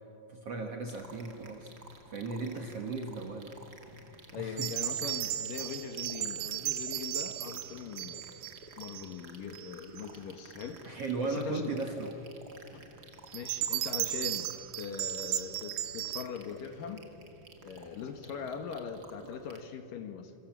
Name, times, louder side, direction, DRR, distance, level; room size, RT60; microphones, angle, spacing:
voice 1, 0.3-1.7 2.1-3.5 4.4-4.7 10.8-12.2, right 3 dB, 55° right, 3 dB, 1.8 m, -36 dB
sound 1, 0.9-19.6, right 3 dB, 35° right, 1.9 m, -53 dB
voice 2, 4.3-8.3 8.8-11.7 12.7-12.8 13.3-17.1 17.6-20.3, left 6 dB, 65° left, 7 dB, 2.7 m, -41 dB
sound 2, 4.6-9.1 9.5-10.0 10.6-10.7 13.3-16.2, right 15 dB, 90° right, 2.9 m, -35 dB
28.0 x 26.5 x 7.5 m, 2.9 s
omnidirectional pair, 4.6 m